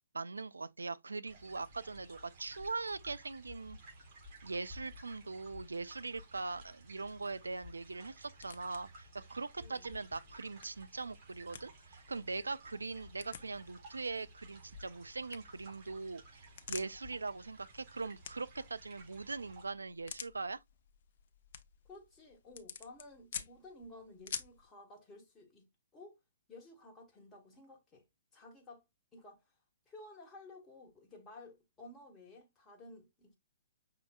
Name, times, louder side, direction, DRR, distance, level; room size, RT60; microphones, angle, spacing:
voice 1, 0.1-3.8 4.4-20.6, right 3 dB, 70° right, 0.4 m, -41 dB
sound 1, 1.2-19.6, right 1 dB, 40° right, 3.3 m, -55 dB
sound 2, 6.5-24.7, left 7 dB, 45° left, 0.6 m, -52 dB
voice 2, 9.6-10.1 21.8-26.2 26.5-28.0 28.3-28.8 29.1-29.4 29.9-33.4, left 2 dB, 15° left, 1.3 m, -54 dB
5.9 x 3.8 x 2.3 m
figure-of-eight pair, 120°, 0 cm